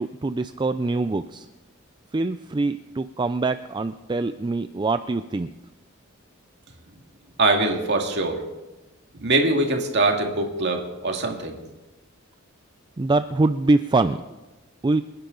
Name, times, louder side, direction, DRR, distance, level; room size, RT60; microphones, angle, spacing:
voice 1, 0.0-1.5 2.1-5.5 13.0-14.2 14.8-15.0, right 3 dB, 20° right, 11 dB, 0.4 m, -24 dB
voice 2, 7.4-8.4 9.2-11.5, right 2 dB, 55° right, 2 dB, 2.1 m, -22 dB
27.5 x 10.5 x 3.9 m, 1.1 s
head